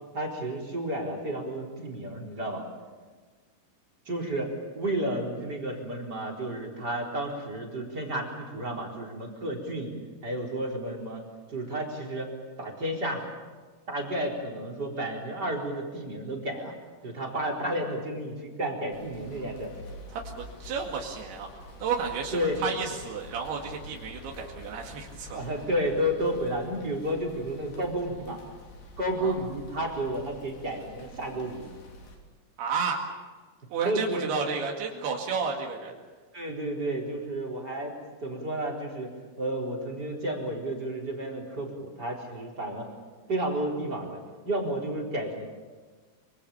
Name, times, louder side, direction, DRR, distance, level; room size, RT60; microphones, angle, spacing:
voice 1, 0.1-2.6 4.1-10.0 10.2-11.2 11.5-12.3 12.6-13.3 13.9-16.7 17.0-19.7 22.3-22.6 25.3-28.4 29.0-31.7 33.8-34.4 34.9-35.0 36.3-37.9 38.2-39.1 39.4-42.9 43.3-44.2 44.5-45.5, right 1 dB, 25° right, 2 dB, 4.5 m, -31 dB
sound 1, 18.9-32.2, left 1 dB, 80° left, 5.6 m, -47 dB
voice 2, 20.1-21.5 21.8-25.5 29.2-29.4 32.6-33.0 33.7-35.9, right 6 dB, 90° right, 0 dB, 4.2 m, -32 dB
26.0 x 25.5 x 7.2 m, 1.4 s
omnidirectional pair, 4.5 m